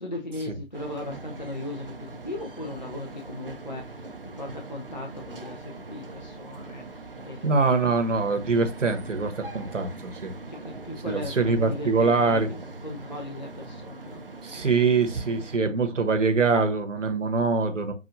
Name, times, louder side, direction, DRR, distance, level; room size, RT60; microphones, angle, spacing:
voice 1, 0.0-4.1 4.4-7.7 10.5-14.2, left 1 dB, 35° left, 0.5 m, -38 dB
sound 1, 0.7-15.6, right 3 dB, 45° right, 0.6 m, -42 dB
voice 2, 7.4-10.3 11.1-12.5 14.4-17.9, right 4 dB, 65° right, 1.1 m, -24 dB
5.9 x 2.5 x 2.6 m
figure-of-eight pair, 150°, 40 cm